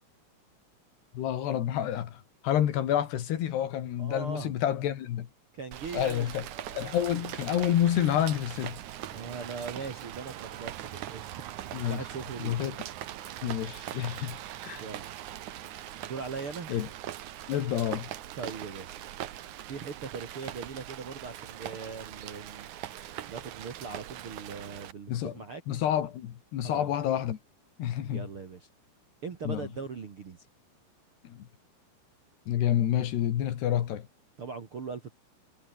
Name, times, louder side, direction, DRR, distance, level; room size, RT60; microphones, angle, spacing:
voice 1, 1.1-5.3 5.9-6.4 6.8-8.8 11.7-12.0 12.4-12.8 13.4-14.4 14.6-14.8 16.7-16.9 17.5-18.1 25.1-25.4 25.7-27.4 27.8-28.3 29.4-29.7 31.2-31.5 32.5-34.1, left 11 dB, 65° left, 3.8 m, -29 dB
voice 2, 4.0-4.5 5.5-7.0 9.1-11.3 11.9-12.5 14.8-15.1 16.0-16.7 18.4-19.0 19.7-22.7 23.3-25.6 26.6-26.9 28.1-28.7 29.2-30.5 34.4-35.1, right 5 dB, 45° right, 1.9 m, -40 dB
Rain, 5.7-24.9, right 12 dB, 70° right, 1.8 m, -41 dB
omnidirectional pair, 5.3 m